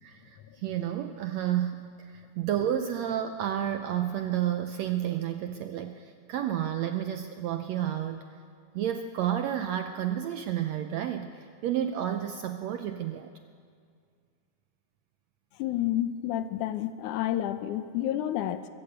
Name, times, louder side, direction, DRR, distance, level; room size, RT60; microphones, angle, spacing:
voice 1, 0.0-8.2 8.7-13.3, right 10 dB, 80° right, 8 dB, 1.6 m, -31 dB
voice 2, 15.6-18.7, left 12 dB, 75° left, 11 dB, 2.1 m, -30 dB
23.5 x 14.5 x 8.0 m, 2.1 s
omnidirectional pair, 3.8 m